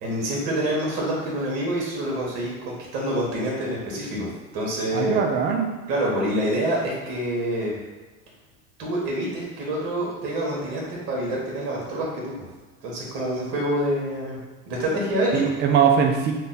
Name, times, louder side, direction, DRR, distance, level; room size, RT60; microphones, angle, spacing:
voice 1, 0.0-5.2 5.9-7.8 8.8-12.3 12.8-14.4 14.7-15.4, right 1 dB, 55° right, -4 dB, 1.4 m, -27 dB
voice 2, 4.9-5.7 15.3-16.3, right 7 dB, 25° right, 3 dB, 0.3 m, -21 dB
3.7 x 2.3 x 4.0 m, 1.2 s
supercardioid pair, 110°, 46 cm